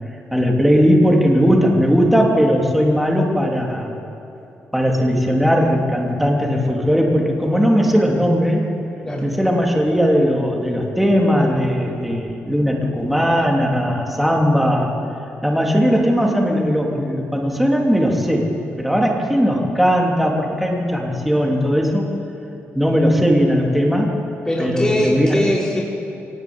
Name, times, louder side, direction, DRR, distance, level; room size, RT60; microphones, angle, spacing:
voice 1, 0.3-3.9 4.7-8.7 9.2-14.9 15.4-18.5 18.8-22.1 22.7-24.1 24.6-25.5, equal, ahead, -1 dB, 3.4 m, -18 dB
voice 2, 24.4-25.8, equal, 15° left, -5 dB, 4.8 m, -21 dB
23.5 x 19.0 x 8.8 m, 2.8 s
cardioid pair, 125°, 5 cm